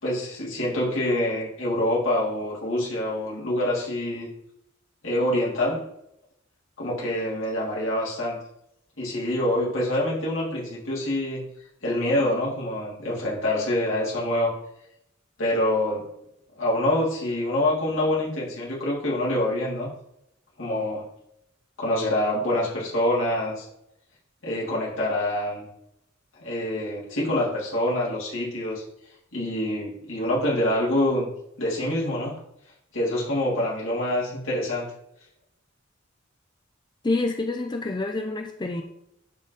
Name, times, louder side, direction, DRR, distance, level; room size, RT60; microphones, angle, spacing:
voice 1, 0.0-4.3 5.0-5.8 6.8-8.4 9.0-11.4 11.8-14.6 15.4-16.1 16.6-19.9 20.6-21.0 21.8-23.6 24.4-25.7 26.4-28.8 29.3-31.3 31.6-32.3 32.9-34.9, left 1 dB, 75° left, -6 dB, 3.4 m, -26 dB
voice 2, 37.0-38.8, left 2 dB, 20° left, 4 dB, 0.5 m, -27 dB
11.5 x 3.9 x 4.1 m, 0.80 s
head